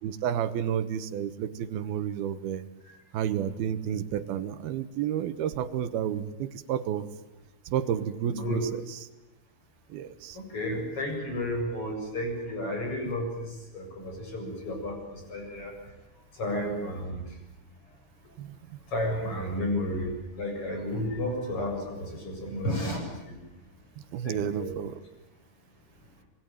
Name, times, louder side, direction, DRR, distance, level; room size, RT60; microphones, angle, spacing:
voice 1, 0.0-2.7 3.1-7.1 7.7-9.0 9.9-10.4 18.4-18.8 24.1-25.0, right 9 dB, 75° right, 13 dB, 2.9 m, -31 dB
voice 2, 8.3-8.6 10.3-15.7 16.3-17.2 18.9-23.4 24.2-24.7, left 1 dB, 30° left, 3 dB, 8.1 m, -32 dB
26.0 x 21.5 x 9.2 m, 0.93 s
omnidirectional pair, 4.7 m